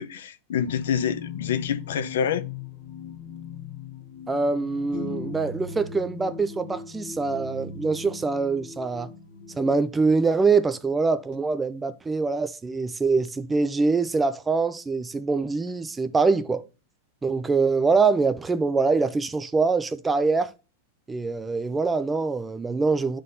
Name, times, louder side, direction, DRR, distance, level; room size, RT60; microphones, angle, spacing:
voice 1, 0.0-2.4, left 8 dB, 80° left, 0.7 m, -27 dB
sound 1, 0.7-11.4, left 6 dB, 35° left, 1.1 m, -39 dB
voice 2, 4.3-9.1 9.6-16.6 17.2-20.5 21.1-23.2, right 4 dB, 10° right, 0.3 m, -24 dB
11.0 x 3.8 x 2.6 m
supercardioid pair, 165°, 0 cm